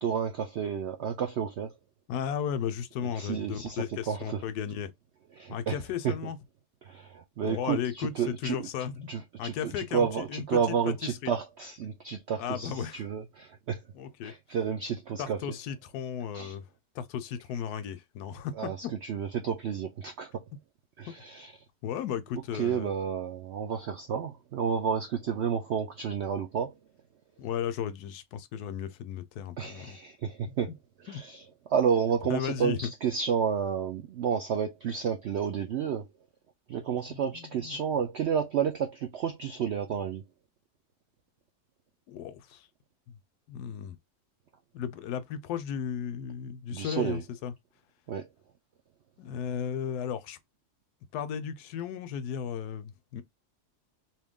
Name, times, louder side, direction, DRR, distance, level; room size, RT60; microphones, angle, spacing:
voice 1, 0.0-1.7 3.1-4.4 5.4-5.8 6.0-6.1 6.8-8.6 9.1-13.8 14.2-15.4 16.3-16.5 18.6-18.8 19.0-20.4 21.0-21.5 22.5-26.7 29.6-30.7 31.0-31.4 31.7-36.1 36.7-40.2 46.7-47.2 48.1-48.3, right 7 dB, 75° right, 0.6 m, -31 dB
voice 2, 2.1-4.9 5.5-6.4 7.4-9.1 9.4-11.3 12.4-13.0 13.9-14.3 15.2-16.6 16.9-18.9 21.8-22.9 27.4-30.0 30.4-30.5 31.1-31.2 32.3-32.9 37.1-37.8 42.1-42.7 43.5-44.0 44.7-47.5 49.2-50.4 51.1-53.2, left 8 dB, 75° left, 1.1 m, -35 dB
2.8 x 2.8 x 3.6 m
omnidirectional pair, 1.7 m